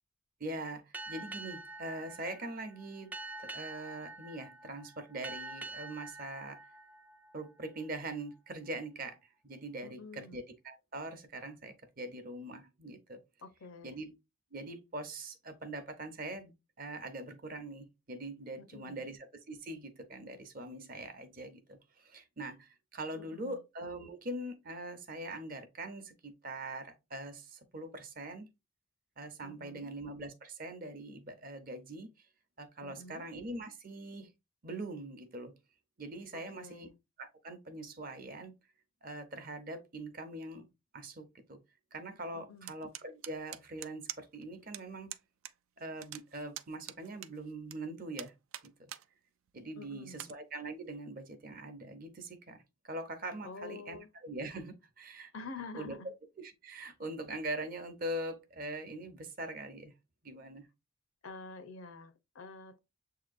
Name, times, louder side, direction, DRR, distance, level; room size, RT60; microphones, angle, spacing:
voice 1, 0.4-6.6 7.3-13.2 13.8-14.1 14.5-28.5 29.2-32.1 32.6-34.3 34.6-35.5 36.0-36.9 37.2-38.6 39.0-40.7 40.9-41.6 41.9-45.1 45.8-48.3 48.6-48.9 49.5-55.3 55.7-56.0 56.4-59.9 60.2-60.7, right 2 dB, 45° right, 0.7 m, -43 dB
Boat Water vehicle, 0.9-8.0, right 2 dB, 10° right, 0.3 m, -46 dB
voice 2, 9.8-10.4 13.4-14.0 18.6-19.1 23.1-23.6 29.4-29.9 32.8-33.3 36.3-36.9 42.3-42.7 49.8-50.3 53.4-54.1 55.3-56.1 61.2-62.8, left 4 dB, 85° left, 0.8 m, -48 dB
sound 1, 42.7-44.4 44.7-44.8 45.1-45.5 45.8-47.8 48.2-49.0 49.5-49.6 50.1-50.3, right 13 dB, 80° right, 0.4 m, -44 dB
7.0 x 2.8 x 2.5 m
head